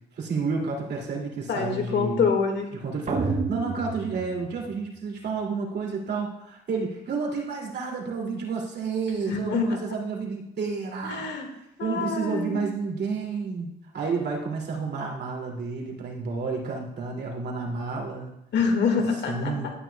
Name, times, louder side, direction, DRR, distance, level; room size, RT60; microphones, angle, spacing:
voice 1, 0.1-2.3 2.8-11.3 11.8-18.4 19.3-19.7, right 4 dB, 55° right, -1 dB, 2.4 m, -30 dB
voice 2, 1.5-2.7 9.2-9.8 11.0-11.5 11.8-12.7 18.5-19.7, left 5 dB, 60° left, 3 dB, 1.8 m, -26 dB
sound 1, 3.1-5.2, right 4 dB, 35° right, 1.1 m, -30 dB
12.5 x 9.3 x 2.3 m, 0.81 s
cardioid pair, 90°, 20 cm